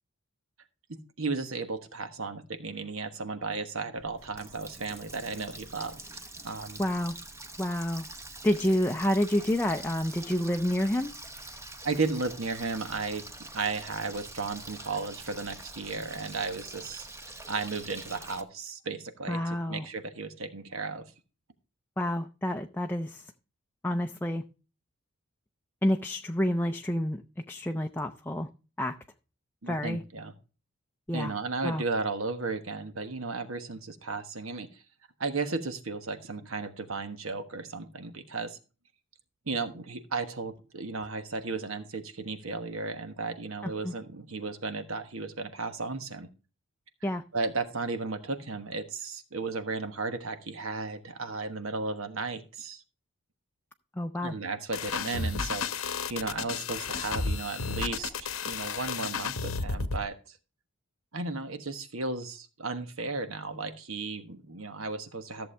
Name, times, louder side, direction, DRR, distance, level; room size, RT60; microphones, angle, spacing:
voice 1, 0.9-6.0 6.4-6.8 11.8-17.1 17.5-21.1 29.6-30.3 31.1-34.8 35.2-38.6 39.5-46.3 47.3-52.8 54.2-60.4 61.1-65.5, right 3 dB, 75° right, 1.3 m, -34 dB
Water tap faucet, 4.0-18.4, right 2 dB, 15° right, 0.8 m, -45 dB
voice 2, 6.8-7.1 7.6-8.1 8.4-11.1 19.3-19.9 22.0-23.3 23.8-24.4 25.8-27.2 27.5-28.5 28.8-29.0 29.7-30.0 31.1-31.3 31.6-31.8 43.6-43.9 47.0-47.2 54.0-54.4, left 1 dB, 10° left, 0.5 m, -29 dB
sound 1, 54.7-60.0, left 4 dB, 75° left, 0.9 m, -32 dB
14.0 x 7.1 x 3.3 m
head